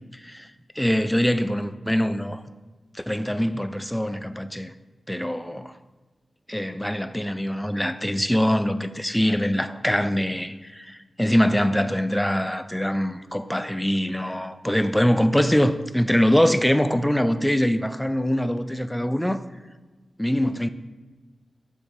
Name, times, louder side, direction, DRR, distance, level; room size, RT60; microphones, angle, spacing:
voice 1, 0.1-0.5 0.8-2.4 2.9-4.7 5.1-5.7 6.5-19.4 20.2-20.7, equal, 5° left, 0.4 m, -23 dB
6.7 x 4.2 x 6.4 m
wide cardioid pair, 85°, 0 cm